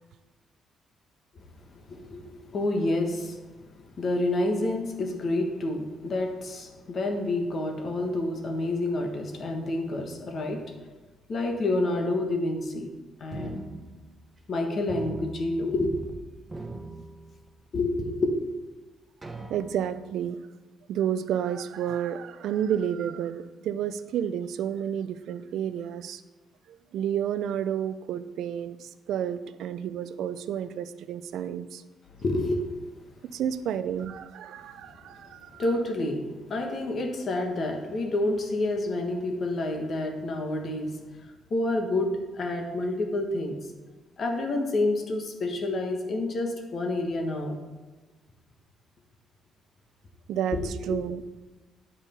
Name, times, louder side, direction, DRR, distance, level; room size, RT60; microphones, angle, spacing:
voice 1, 1.9-3.4 4.0-10.6 11.3-12.9 13.2-13.6 14.5-15.9 17.7-18.3 32.2-32.7 35.6-41.0 41.5-43.6 44.2-47.6 50.5-51.0, left 2 dB, 45° left, 4 dB, 1.1 m, -28 dB
sound 1, 13.3-14.6 14.9-16.2 16.4-17.8 18.3-18.4 19.2-20.1, right 2 dB, 15° right, 0.8 m, -41 dB
voice 2, 19.5-20.4 20.9-26.2 26.7-31.8 33.3-35.6 50.3-51.2, right 9 dB, 75° right, 13 dB, 0.4 m, -31 dB
9.8 x 5.4 x 4.2 m, 1.2 s
cardioid pair, 135°, 0 cm